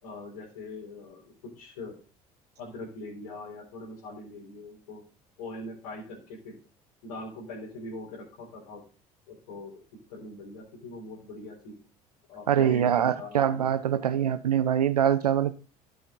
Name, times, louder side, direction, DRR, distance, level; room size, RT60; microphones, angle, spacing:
voice 1, 0.0-2.0 2.6-5.0 5.4-6.6 7.0-8.8 9.3-9.8 10.1-11.7 12.3-13.6 13.9-14.3, left 2 dB, 75° left, 3.9 m, -42 dB
voice 2, 12.5-15.5, right 9 dB, 90° right, 0.6 m, -24 dB
12.5 x 6.7 x 3.8 m
hypercardioid pair, 60°, 19 cm